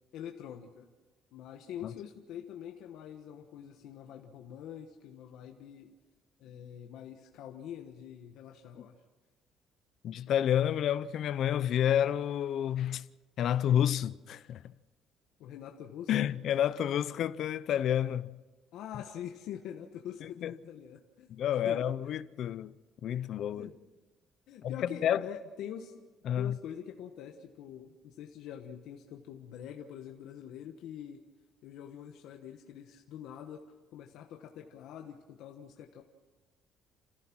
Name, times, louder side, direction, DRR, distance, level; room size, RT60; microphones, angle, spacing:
voice 1, 0.1-0.9 1.3-5.9 6.4-9.0 15.4-16.3 18.7-21.3 21.6-21.9 23.5-23.8 24.5-25.9 26.4-31.2 31.6-33.6 33.9-36.0, left 9 dB, 65° left, 1.3 m, -45 dB
voice 2, 10.0-13.1 13.4-14.7 16.1-18.4 20.2-20.5 21.3-22.7 23.0-23.7 24.6-24.8 25.0-25.2 26.2-26.6, left 10 dB, 50° left, 0.6 m, -29 dB
29.0 x 15.0 x 6.2 m
cardioid pair, 175°, 0 cm